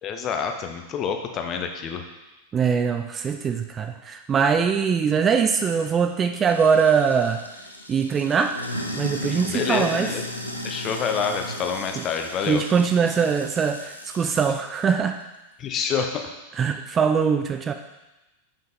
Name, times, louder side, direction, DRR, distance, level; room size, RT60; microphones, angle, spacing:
voice 1, 0.0-2.0 9.5-10.2 10.6-12.6 15.6-16.2, left 6 dB, 30° left, 5 dB, 0.7 m, -27 dB
voice 2, 2.5-7.4 7.9-8.6 8.9-10.1 12.0-12.1 12.4-15.2 16.6-17.7, right 6 dB, 25° right, 7 dB, 0.3 m, -22 dB
Sink (filling or washing), 6.4-14.6, left 1 dB, 85° left, 0.6 m, -35 dB
5.8 x 5.3 x 3.6 m, 1.0 s
figure-of-eight pair, 90°, 0 cm